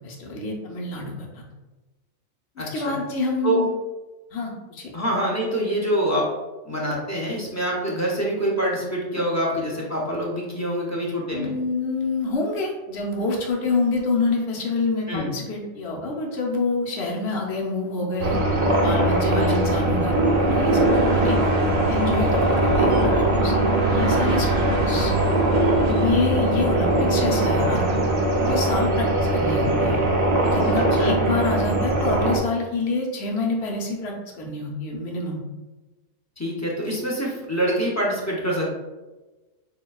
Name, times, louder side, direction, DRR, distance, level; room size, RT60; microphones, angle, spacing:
voice 1, 0.0-1.4 2.7-3.7 4.3-4.9 11.3-18.4 18.8-23.5 23.9-25.1 25.9-27.8 28.4-30.0 30.4-35.4, left 3 dB, 60° left, -1 dB, 1.0 m, -27 dB
voice 2, 2.6-3.0 3.4-3.6 4.9-6.3 6.7-11.5 15.1-15.3 19.3-19.4 30.7-31.3 36.4-38.7, right 1 dB, 20° left, -3 dB, 0.5 m, -25 dB
sound 1, 18.2-32.4, right 1 dB, 55° right, 0.4 m, -21 dB
6.6 x 2.3 x 2.3 m, 1.1 s
omnidirectional pair, 1.3 m